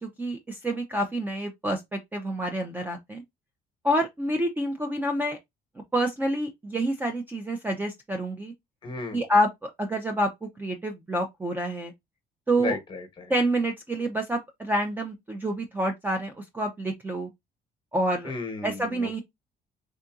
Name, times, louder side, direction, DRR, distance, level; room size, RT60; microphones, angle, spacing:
voice 1, 0.0-3.2 3.8-5.4 5.9-8.5 9.1-11.9 12.5-12.8 13.3-17.3 17.9-18.3 18.6-19.2, right 1 dB, 10° right, 0.4 m, -28 dB
voice 2, 8.8-9.2 12.6-13.3 18.2-19.2, left 4 dB, 30° left, 1.0 m, -34 dB
3.7 x 2.5 x 2.3 m
cardioid pair, 130°, 17 cm